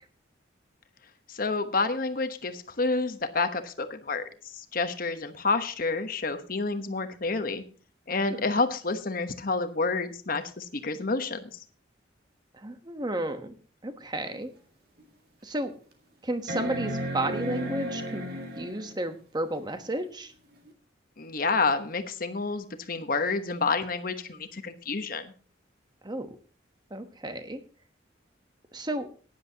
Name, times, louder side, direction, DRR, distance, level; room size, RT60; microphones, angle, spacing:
voice 1, 1.3-7.6 8.1-11.6 21.2-25.3, left 3 dB, 45° left, 9 dB, 1.1 m, -29 dB
voice 2, 12.6-13.6 13.8-14.5 15.4-15.7 16.2-18.3 18.6-20.3 26.0-26.4 26.9-27.6 28.7-29.1, right 1 dB, 20° right, 8 dB, 1.1 m, -32 dB
sound 1, 14.3-14.4 15.0-15.1 16.5-19.0 20.7-20.8, equal, 55° right, 1.9 m, -34 dB
16.0 x 10.5 x 2.9 m, 0.39 s
head